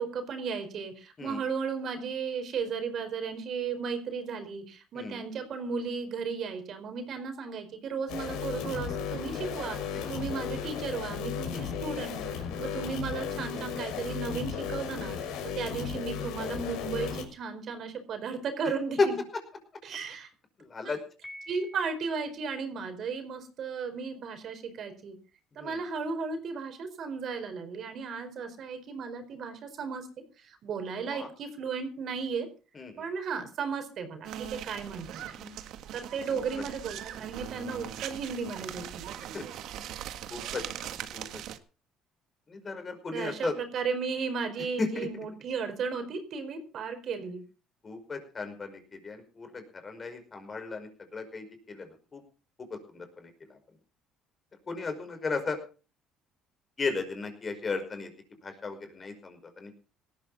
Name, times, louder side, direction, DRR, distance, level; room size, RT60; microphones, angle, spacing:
voice 1, 0.0-19.1 19.8-20.3 20.8-20.9 21.5-25.2 25.6-30.1 30.4-32.5 33.0-35.6 35.9-39.0 43.1-47.4, right 5 dB, 55° right, 7 dB, 4.5 m, -35 dB
sound 1, 8.1-17.2, left 7 dB, 85° left, 6.1 m, -35 dB
voice 2, 20.6-21.0 25.6-25.8 31.1-31.3 32.7-33.0 36.3-36.4 39.3-39.5 40.3-41.2 42.5-43.5 44.8-45.1 47.8-52.2 52.7-53.6 54.7-55.6 56.8-58.1 58.4-59.8, left 4 dB, 30° left, 7 dB, 5.4 m, -35 dB
Piano, 21.2-22.4, left 1 dB, 10° left, 5.7 m, -47 dB
sound 2, 34.2-41.6, right 11 dB, 70° right, 1.8 m, -40 dB
18.5 x 13.5 x 4.1 m, 0.36 s
cardioid pair, 115°, 0 cm